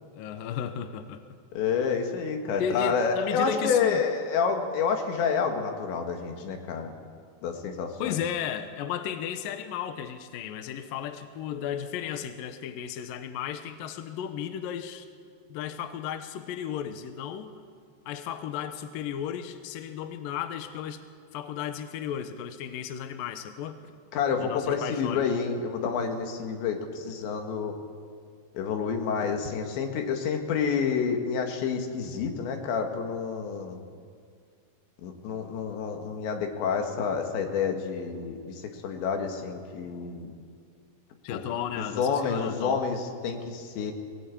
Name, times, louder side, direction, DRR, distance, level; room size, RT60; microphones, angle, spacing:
voice 1, 0.1-1.2 2.6-4.0 8.0-15.1 15.5-17.5 18.1-21.0 21.3-23.8 24.4-25.2 41.2-42.8, left 9 dB, 75° left, 8 dB, 2.2 m, -34 dB
voice 2, 1.5-6.9 7.4-8.2 24.1-27.8 28.5-33.8 35.0-40.3 41.3-41.4 41.8-43.9, left 6 dB, 90° left, 4 dB, 4.2 m, -29 dB
23.5 x 18.5 x 8.5 m, 2.1 s
omnidirectional pair, 5.0 m